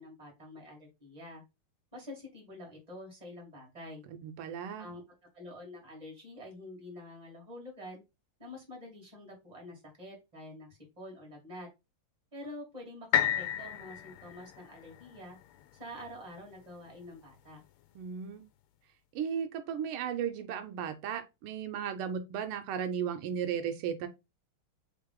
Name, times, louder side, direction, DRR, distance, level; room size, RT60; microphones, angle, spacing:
voice 1, 0.0-1.4 1.9-4.1 4.8-5.0 5.3-8.0 8.4-11.7 12.3-15.4 15.7-17.6, left 1 dB, 20° right, 2.0 m, -47 dB
voice 2, 4.2-4.9 17.9-18.4 19.1-24.1, right 8 dB, 90° right, 1.5 m, -35 dB
sound 1, 13.1-17.1 17.6-17.7, left 11 dB, 85° left, 1.5 m, -34 dB
3.7 x 3.6 x 3.6 m
omnidirectional pair, 2.3 m